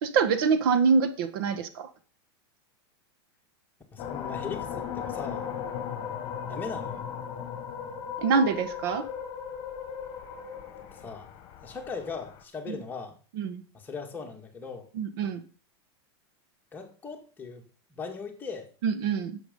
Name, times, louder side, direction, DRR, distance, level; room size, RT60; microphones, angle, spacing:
voice 1, 0.0-1.9 8.2-9.0 12.7-12.8 13.4-13.6 15.0-15.4 18.8-19.4, right 5 dB, 60° right, 10 dB, 1.5 m, -25 dB
voice 2, 3.9-5.5 6.5-7.0 10.9-11.3 11.6-13.2 13.7-14.9 16.7-18.7, left 5 dB, 15° left, 2 dB, 2.0 m, -39 dB
sound 1, 4.0-12.4, left 8 dB, 35° left, 1.9 m, -37 dB
11.5 x 7.6 x 5.4 m, 0.40 s
supercardioid pair, 155°, 14 cm